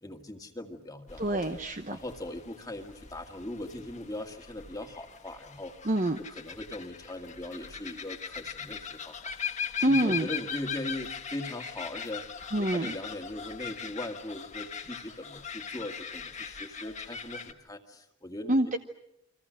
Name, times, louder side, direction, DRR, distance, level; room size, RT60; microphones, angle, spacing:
voice 1, 0.0-1.4 1.9-5.7 6.3-18.6, left 1 dB, 15° left, 4 dB, 1.9 m, -40 dB
sound 1, 1.1-17.5, left 7 dB, 35° left, 1.6 m, -40 dB
voice 2, 1.2-2.0 5.9-6.2 9.8-10.3 12.5-12.9 18.5-18.8, right 1 dB, 35° right, 6 dB, 0.9 m, -26 dB
30.0 x 24.5 x 6.3 m, 0.80 s
head